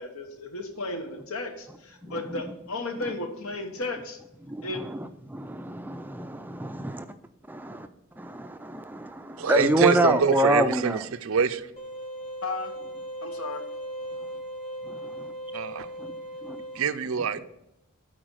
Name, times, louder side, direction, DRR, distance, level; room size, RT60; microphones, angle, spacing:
voice 1, 0.0-4.2 4.6-4.8 12.4-12.7 13.2-13.6, left 2 dB, 80° left, 5 dB, 1.2 m, -34 dB
voice 2, 4.5-5.0 5.3-7.1 7.5-7.9 8.2-11.0 14.9-15.3 16.0-16.1 16.4-16.6, right 1 dB, 10° right, 9 dB, 0.4 m, -27 dB
voice 3, 9.4-11.6 15.5-15.9 16.7-17.4, right 6 dB, 70° right, 12 dB, 0.5 m, -25 dB
sound 1, 11.8-16.8, equal, 35° left, 1.2 m, -38 dB
8.9 x 4.3 x 6.3 m, 0.85 s
head